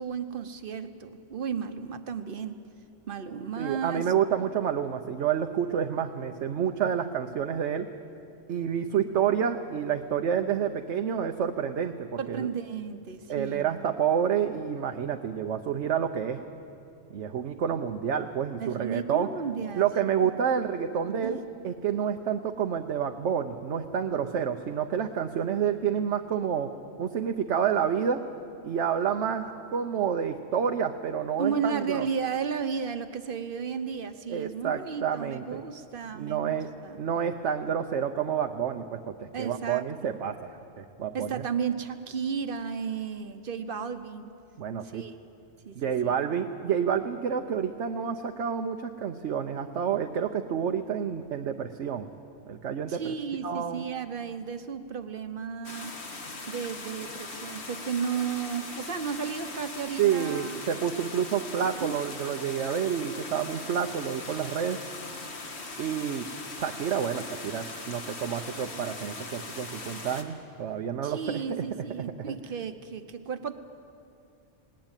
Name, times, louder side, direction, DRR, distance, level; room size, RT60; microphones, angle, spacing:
voice 1, 0.0-2.6 3.1-4.1 12.2-13.9 18.6-19.9 20.2-20.3 21.2-21.4 31.4-37.0 39.3-40.2 41.1-44.3 44.8-45.1 45.6-45.8 46.0-46.2 52.9-56.0 56.5-60.6 61.6-62.0 71.0-73.5, right 6 dB, 50° right, 9 dB, 1.1 m, -33 dB
voice 2, 3.6-7.9 8.5-11.9 12.3-12.5 13.3-16.4 17.1-19.3 19.8-26.7 27.0-28.2 28.6-32.1 34.3-35.6 36.1-36.7 37.0-41.3 44.6-45.0 45.8-52.1 52.5-53.1 53.4-53.8 60.0-64.8 65.8-66.3 66.6-71.6 72.3-72.4, right 8 dB, 70° right, 5 dB, 1.1 m, -29 dB
sound 1, 55.6-70.2, left 3 dB, 60° left, 1.9 m, -40 dB
19.5 x 18.5 x 9.0 m, 2.6 s
omnidirectional pair, 1.3 m